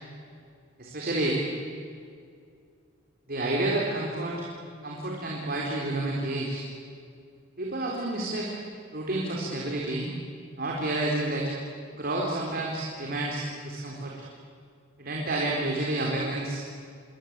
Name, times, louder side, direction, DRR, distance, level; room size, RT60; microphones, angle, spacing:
voice 1, 0.8-1.4 3.3-4.5 4.8-6.6 7.6-8.6 8.9-10.1 10.6-11.5 11.9-14.1 15.0-16.7, right 2 dB, 50° right, -2 dB, 4.1 m, -29 dB
27.5 x 24.0 x 8.9 m, 2.3 s
head